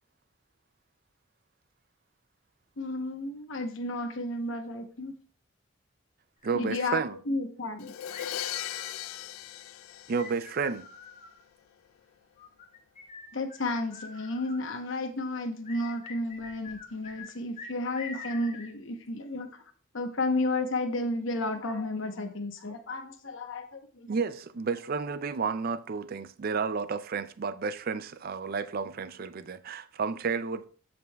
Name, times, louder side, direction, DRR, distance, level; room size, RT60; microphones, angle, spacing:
voice 1, 2.8-5.1 6.5-7.0 7.3-7.9 13.3-19.5 19.9-24.1, left 2 dB, 70° left, 0.9 m, -32 dB
sound 1, 6.4-7.2 8.1-9.3 10.2-11.4 12.4-14.8 15.6-17.3 17.6-18.7, left 4 dB, 35° left, 1.0 m, -46 dB
voice 2, 6.4-7.2 10.1-10.9 24.1-30.7, right 5 dB, 45° right, 0.4 m, -31 dB
Crash cymbal, 7.8-10.7, left 12 dB, 90° left, 0.3 m, -38 dB
14.5 x 5.2 x 2.3 m
head